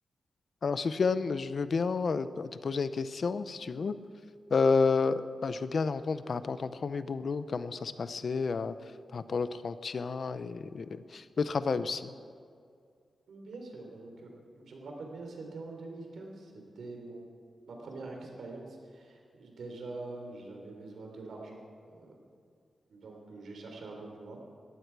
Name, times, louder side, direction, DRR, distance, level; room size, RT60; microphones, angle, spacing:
voice 1, 0.6-3.9 4.5-8.7 9.1-12.1, left 4 dB, 50° left, 13 dB, 0.6 m, -30 dB
voice 2, 13.3-14.3 14.5-17.3 17.7-21.6 21.9-22.2 22.9-24.4, right 3 dB, 85° right, 1 dB, 3.5 m, -44 dB
20.0 x 15.0 x 4.7 m, 2.3 s
wide cardioid pair, 160°, 0 cm